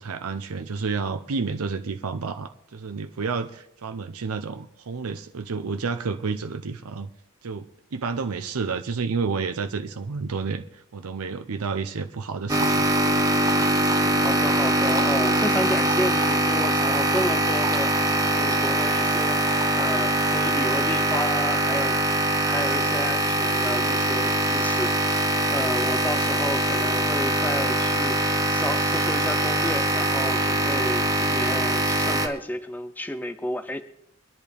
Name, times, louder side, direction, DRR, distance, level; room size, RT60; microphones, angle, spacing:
voice 1, 0.0-7.1 7.4-7.7 7.9-12.8, right 4 dB, 85° right, 7 dB, 0.6 m, -30 dB
sound 1, 12.5-32.3, right 1 dB, 15° right, 1.2 m, -23 dB
voice 2, 13.6-22.0 22.3-33.8, left 1 dB, 10° left, 9 dB, 0.5 m, -32 dB
23.5 x 10.5 x 3.4 m, 0.78 s
head